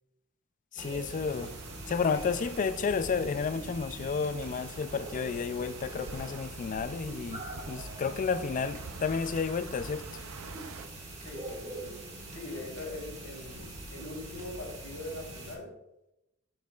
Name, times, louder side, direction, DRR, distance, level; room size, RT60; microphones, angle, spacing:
voice 1, 0.7-1.5 1.9-10.2, left 5 dB, 40° left, 0.3 m, -31 dB
sound 1, 0.8-15.6, right 1 dB, 30° right, 1.5 m, -43 dB
sound 2, 0.9-10.9, right 4 dB, 70° right, 0.5 m, -48 dB
voice 2, 11.2-12.0 12.3-15.7, left 2 dB, 70° left, 2.2 m, -42 dB
7.6 x 7.4 x 2.4 m
head